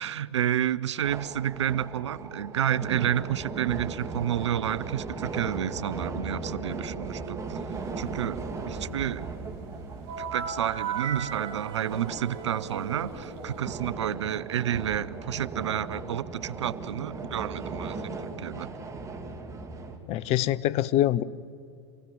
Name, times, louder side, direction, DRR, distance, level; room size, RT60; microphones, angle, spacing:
voice 1, 0.0-7.6 8.0-9.2 10.2-18.7, right 10 dB, 80° right, 0.7 m, -30 dB
sound 1, 1.0-20.0, right 3 dB, 20° right, 2.9 m, -38 dB
sound 2, 10.1-13.7, right 7 dB, 60° right, 2.9 m, -37 dB
voice 2, 20.1-21.2, left 13 dB, 45° left, 0.8 m, -24 dB
27.5 x 17.0 x 9.3 m
hypercardioid pair, 95°, 15 cm